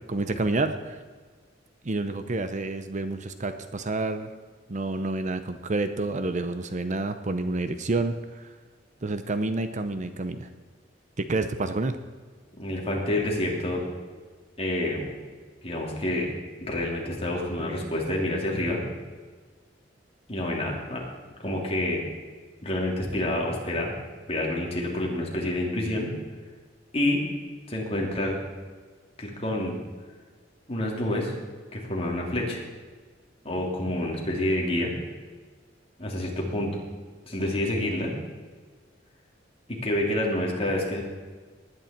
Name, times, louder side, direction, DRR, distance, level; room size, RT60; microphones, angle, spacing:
voice 1, 0.1-1.0 1.8-4.3 4.7-8.4 9.0-10.5 11.2-12.0, right 2 dB, 40° right, 9 dB, 0.7 m, -29 dB
voice 2, 12.6-13.8 14.6-15.0 15.6-16.3 16.6-18.8 20.3-21.0 21.4-22.0 22.6-23.9 24.3-26.1 26.9-27.2 27.7-28.4 29.2-29.8 30.7-31.3 31.7-32.6 33.4-34.9 36.0-36.7 37.3-38.1 39.7-41.0, left 1 dB, 35° left, -2 dB, 3.2 m, -28 dB
19.0 x 9.9 x 4.5 m, 1.5 s
head